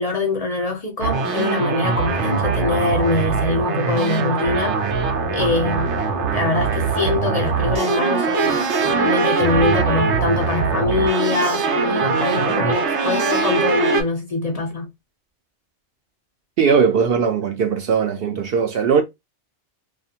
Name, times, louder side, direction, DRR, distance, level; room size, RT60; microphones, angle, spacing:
voice 1, 0.0-4.8 5.3-6.0 6.3-14.9, left 3 dB, 40° left, 0.7 m, -23 dB
sound 1, 1.0-14.0, right 5 dB, 90° right, 1.0 m, -21 dB
voice 2, 16.6-19.0, right 6 dB, 65° right, 0.7 m, -19 dB
2.4 x 2.4 x 2.7 m
omnidirectional pair, 1.1 m